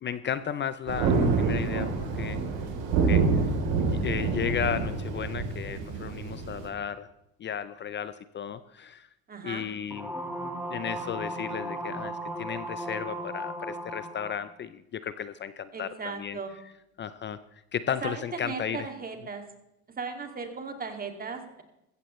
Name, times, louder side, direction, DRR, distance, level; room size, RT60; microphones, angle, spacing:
voice 1, 0.0-2.4 2.9-3.2 3.8-7.1 7.4-9.1 9.4-10.1 10.7-15.9 16.2-16.4 17.0-18.8, left 8 dB, 30° left, 14 dB, 0.6 m, -34 dB
Thunder, 0.9-6.7, right 4 dB, 70° right, 3.6 m, -27 dB
voice 2, 9.3-9.6 15.7-16.5 18.0-19.4 20.0-21.6, right 4 dB, 20° right, 5 dB, 2.4 m, -37 dB
sound 1, 9.9-14.4, right 1 dB, 5° right, 2.0 m, -36 dB
15.5 x 15.0 x 3.2 m, 0.84 s
supercardioid pair, 115°, 39 cm